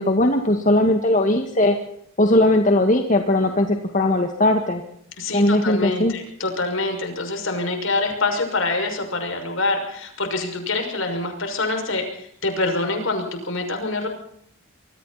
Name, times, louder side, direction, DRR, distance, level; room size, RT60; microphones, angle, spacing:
voice 1, 0.0-1.8 2.2-4.8 5.3-6.1, left 1 dB, 35° left, 4 dB, 1.9 m, -19 dB
voice 2, 5.2-14.1, left 3 dB, 60° left, 5 dB, 6.1 m, -25 dB
26.5 x 23.5 x 4.2 m, 0.69 s
head